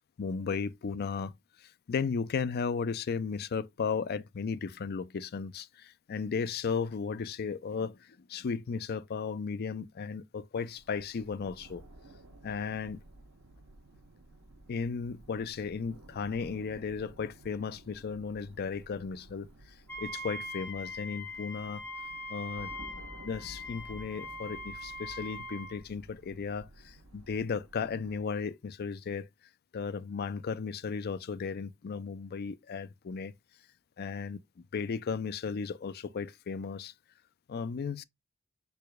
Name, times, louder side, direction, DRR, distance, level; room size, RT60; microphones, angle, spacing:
voice 1, 0.2-1.3 1.9-8.0 8.3-11.8 12.4-13.0 14.7-19.5 20.0-21.8 22.3-22.7 23.2-29.3 29.7-33.3 34.0-34.4 34.7-36.9 37.5-38.0, left 5 dB, 50° left, 0.4 m, -35 dB
sound 1, 10.6-28.2, right 1 dB, 85° right, 1.0 m, -54 dB
Wind instrument woodwind instrument, 19.9-25.8, left 1 dB, 10° left, 1.4 m, -42 dB
4.8 x 4.8 x 2.2 m
head